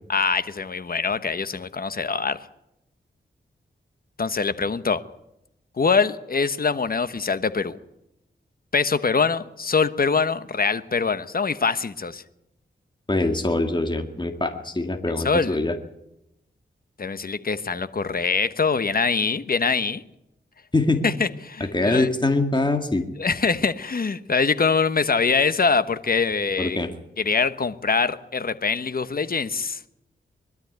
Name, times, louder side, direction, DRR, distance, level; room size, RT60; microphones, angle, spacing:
voice 1, 0.1-2.4 4.2-5.0 5.8-7.8 8.7-12.2 15.2-15.6 17.0-20.0 21.0-22.1 23.2-26.8 27.2-29.8, left 5 dB, 50° left, 12 dB, 1.2 m, -23 dB
voice 2, 13.1-15.8 20.7-21.1 21.7-23.0 26.6-26.9, left 2 dB, 25° left, 5 dB, 2.1 m, -23 dB
21.5 x 12.5 x 9.4 m, 0.85 s
cardioid pair, 60°, 20 cm